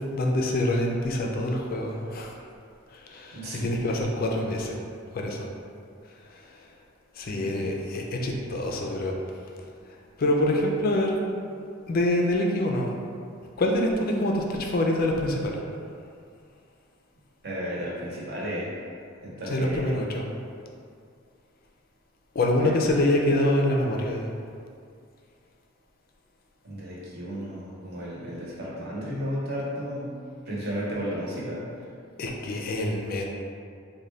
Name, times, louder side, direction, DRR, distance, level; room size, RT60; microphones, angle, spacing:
voice 1, 0.1-2.3 2.9-4.8 5.1-5.5 7.2-9.1 10.2-11.2 11.9-12.9 13.6-15.6 19.5-20.2 22.4-24.3 32.2-33.2, left 1 dB, 45° left, 1 dB, 0.4 m, -25 dB
voice 2, 3.3-3.7 7.4-7.7 17.4-18.7 19.2-20.0 22.6-23.1 26.6-30.1 30.5-31.6, equal, 50° right, -6 dB, 0.9 m, -33 dB
3.9 x 2.2 x 3.2 m, 2.3 s
head